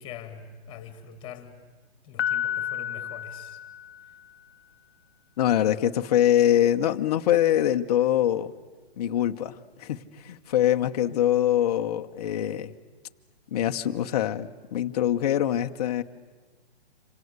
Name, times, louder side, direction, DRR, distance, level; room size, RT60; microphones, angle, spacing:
voice 1, 0.0-1.6 2.0-3.6, left 7 dB, 15° left, 10 dB, 2.3 m, -43 dB
Piano, 2.2-4.3, left 10 dB, 75° left, 0.9 m, -31 dB
voice 2, 5.4-8.5 9.0-12.7 13.5-16.0, left 11 dB, 35° left, 6 dB, 1.0 m, -24 dB
28.0 x 26.5 x 8.1 m, 1.4 s
hypercardioid pair, 155°, 33 cm